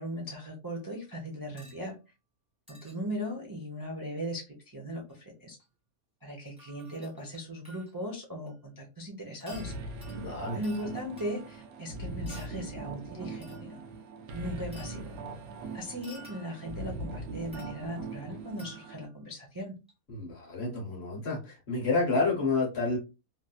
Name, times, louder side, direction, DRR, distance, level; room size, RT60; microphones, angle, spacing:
voice 1, 0.0-2.0 2.7-5.6 6.2-9.7 10.5-13.8 14.3-15.2 15.7-19.7, equal, 25° right, 0.4 m, -38 dB
sound 1, 1.6-1.8 2.7-2.9 5.1-5.2 5.6-5.7 6.5-8.0 8.5-8.6 9.4-11.7 12.2-12.7 13.4-13.8 14.7-15.2 16.0-16.8 17.5-18.1 18.6-19.1 19.9-20.0, right 1 dB, 5° right, 1.5 m, -54 dB
sound 2, 9.5-19.1, right 2 dB, 75° right, 1.1 m, -41 dB
voice 2, 10.1-10.6 20.1-23.0, left 3 dB, 45° left, 1.3 m, -29 dB
3.2 x 2.7 x 2.3 m
omnidirectional pair, 1.6 m